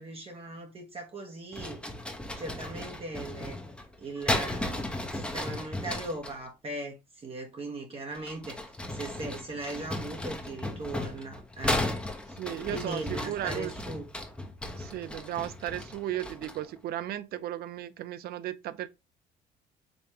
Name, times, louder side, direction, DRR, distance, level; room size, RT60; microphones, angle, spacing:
voice 1, 0.0-1.8 2.4-3.6 4.0-8.6 8.9-11.8 12.3-14.1, right 2 dB, 35° right, 1.3 m, -39 dB
sound 1, 1.5-6.4 8.1-16.7, left 1 dB, 5° left, 1.0 m, -35 dB
voice 2, 12.4-13.7 14.8-18.9, right 12 dB, 65° right, 0.5 m, -35 dB
5.2 x 3.2 x 2.9 m
cardioid pair, 110°, 17 cm